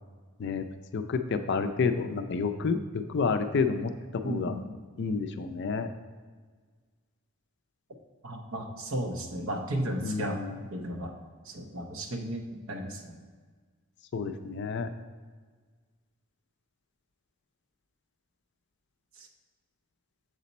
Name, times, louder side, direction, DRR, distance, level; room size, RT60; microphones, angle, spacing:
voice 1, 0.9-2.8 3.1-4.5 5.0-5.9 10.0-10.6 14.1-14.9, left 5 dB, 50° left, 9 dB, 0.4 m, -29 dB
voice 2, 4.2-4.7 8.2-10.4 10.7-11.1 11.5-13.2 19.2-19.3, right 1 dB, 60° right, 3 dB, 0.7 m, -34 dB
6.7 x 4.1 x 4.1 m, 1.5 s
head